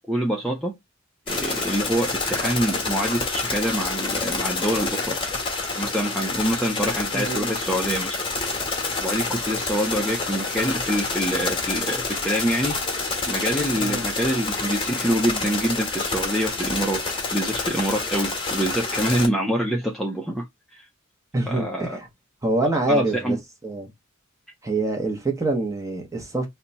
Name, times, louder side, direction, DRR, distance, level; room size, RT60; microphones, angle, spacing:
voice 1, 0.1-0.8 1.3-5.2 5.7-8.3 9.0-17.0 17.3-20.5 20.7-20.9 21.5-22.0 22.9-23.4, equal, ahead, 0.4 m, -26 dB
sound 1, 1.3-19.3, left 3 dB, 25° left, 1.0 m, -28 dB
voice 2, 7.1-7.5 13.8-14.0 21.3-22.1 22.4-23.4 23.6-23.9 24.6-26.5, right 2 dB, 15° right, 0.8 m, -25 dB
2.9 x 2.2 x 3.9 m
head